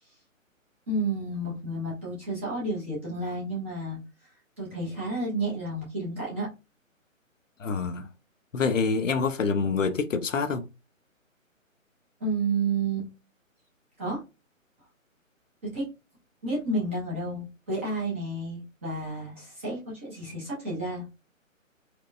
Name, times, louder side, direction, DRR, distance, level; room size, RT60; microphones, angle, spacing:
voice 1, 0.9-4.0 4.6-6.5 12.2-13.1 14.0-14.2 15.6-15.9 16.4-21.1, right 2 dB, 10° right, 0.6 m, -31 dB
voice 2, 7.6-8.1 8.5-10.6, left 5 dB, 70° left, 0.6 m, -26 dB
4.2 x 2.2 x 2.5 m
figure-of-eight pair, 140°, 40 cm